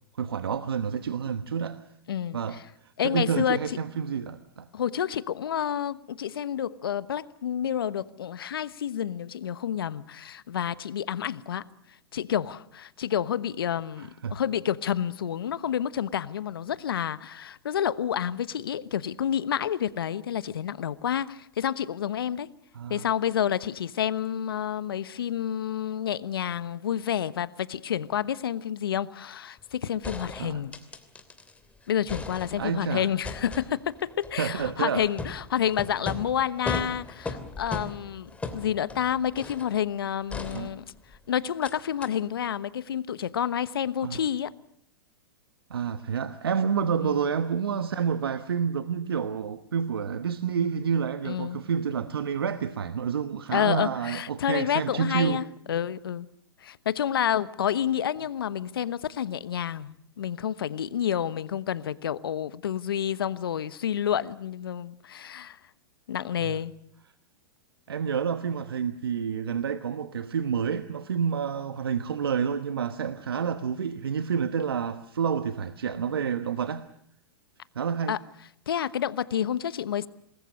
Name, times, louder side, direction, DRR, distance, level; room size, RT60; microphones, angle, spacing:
voice 1, 0.2-1.9 2.3-4.7 14.0-14.4 22.7-23.1 30.4-30.6 32.6-33.1 34.4-35.1 40.5-40.7 44.0-44.2 45.7-55.4 66.4-66.6 67.9-76.8 77.7-78.2, right 7 dB, 80° right, 1.2 m, -29 dB
voice 2, 2.1-2.4 3.0-3.8 4.7-11.7 12.1-22.5 22.9-30.7 31.9-40.9 41.3-44.5 47.0-47.2 51.2-51.6 53.5-56.3 56.6-65.6 66.1-66.7 78.1-78.2 78.7-80.1, left 9 dB, 75° left, 1.1 m, -29 dB
sound 1, 29.6-29.7 30.0-31.6 31.9-32.8 33.2-39.8 40.3-41.2 41.6-41.7 42.0-42.1, left 3 dB, 10° left, 2.9 m, -38 dB
27.0 x 21.0 x 6.6 m
hypercardioid pair, 110°, 12 cm